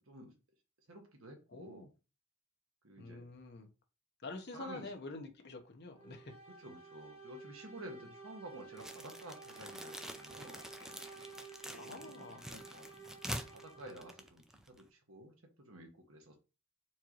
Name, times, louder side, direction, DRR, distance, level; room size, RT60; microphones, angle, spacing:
voice 1, 0.9-1.9 2.8-3.2 4.5-4.9 6.6-10.9 11.6-12.0 12.3-12.9 13.3-16.4, right 1 dB, 70° right, 1.4 m, -51 dB
voice 2, 1.5-1.9 3.0-3.7 4.2-6.3 11.7-12.5, left 3 dB, 55° left, 1.0 m, -47 dB
sound 1, 5.9-14.3, right 4 dB, 25° right, 1.2 m, -53 dB
sound 2, 8.8-14.9, equal, ahead, 0.4 m, -47 dB
4.5 x 3.7 x 3.0 m
head